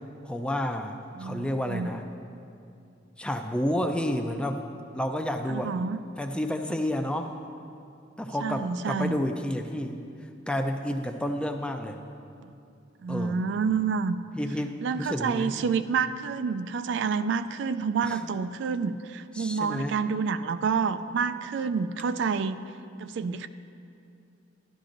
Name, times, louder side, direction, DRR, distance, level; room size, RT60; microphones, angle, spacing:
voice 1, 0.2-2.0 3.2-4.6 4.9-5.7 6.2-7.3 8.2-10.0 10.5-12.0 13.1-13.4 14.4-15.5 18.0-18.3 19.4-20.0, left 1 dB, 5° left, 5 dB, 0.4 m, -30 dB
voice 2, 1.2-1.9 5.5-6.0 8.4-9.2 12.4-12.5 13.0-14.2 14.8-22.6 23.0-23.5, right 5 dB, 60° right, 11 dB, 0.3 m, -28 dB
13.0 x 11.5 x 2.6 m, 2.6 s
head